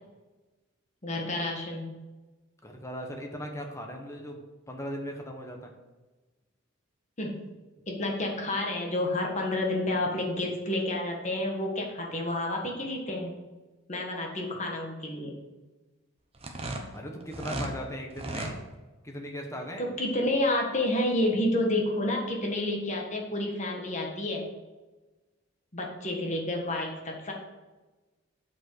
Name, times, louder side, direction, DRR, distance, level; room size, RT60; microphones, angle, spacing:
voice 1, 1.0-1.9 7.2-7.5 7.9-13.3 13.9-15.3 19.8-24.5 25.7-27.3, left 1 dB, 35° left, 0 dB, 1.4 m, -29 dB
voice 2, 2.6-4.4 4.7-5.7 16.9-18.6 19.0-19.9, equal, 15° left, 2 dB, 1.1 m, -38 dB
sound 1, 16.3-17.7 18.1-18.6, right 1 dB, 30° right, 0.9 m, -35 dB
8.0 x 4.7 x 6.3 m, 1.2 s
head